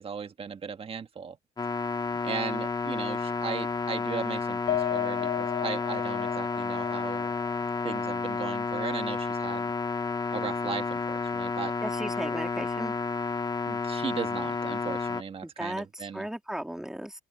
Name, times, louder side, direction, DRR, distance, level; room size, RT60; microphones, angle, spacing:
voice 1, 0.0-1.4 2.2-7.3 7.8-9.7 10.3-11.7 13.7-16.3, right 6 dB, 35° right, 1.7 m, -37 dB
sound 1, 1.6-15.2, left 4 dB, 25° left, 2.0 m, -31 dB
Piano, 4.7-9.2 9.5-9.7 10.1-10.2, left 12 dB, 70° left, 4.2 m, -35 dB
voice 2, 11.8-12.9 15.4-17.1, right 1 dB, 5° right, 3.5 m, -36 dB
open air
cardioid pair, 110°, 17 cm